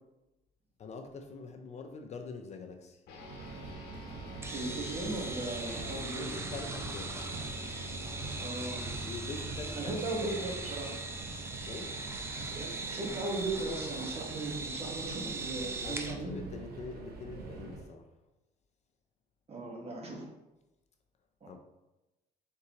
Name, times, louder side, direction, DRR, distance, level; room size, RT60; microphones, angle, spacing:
voice 1, 0.8-3.0 5.9-7.2 9.0-10.3 11.7-12.0 15.8-18.1 21.5-21.6, left 4 dB, 40° left, 5 dB, 0.5 m, -44 dB
sound 1, 3.1-12.8, left 1 dB, 75° left, 1.0 m, -47 dB
Subway metro underground, 3.1-17.9, right 4 dB, 65° right, 0.8 m, -45 dB
sound 2, 4.4-16.2, right 3 dB, 15° right, 0.5 m, -40 dB
voice 2, 4.5-6.3 8.4-8.9 9.8-10.9 12.9-16.4 19.5-20.3 21.4-21.6, right 2 dB, 35° right, -1 dB, 1.2 m, -37 dB
4.6 x 3.8 x 2.8 m, 0.99 s
cardioid pair, 110°, 17 cm